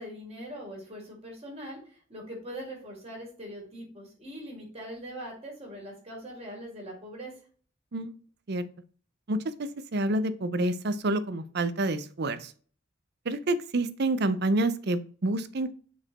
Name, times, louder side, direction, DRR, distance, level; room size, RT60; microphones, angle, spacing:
voice 1, 0.0-7.3, equal, 30° right, -1 dB, 3.1 m, -42 dB
voice 2, 9.3-12.5 13.3-15.7, right 2 dB, 55° right, 13 dB, 0.6 m, -28 dB
6.0 x 4.2 x 4.1 m, 0.43 s
head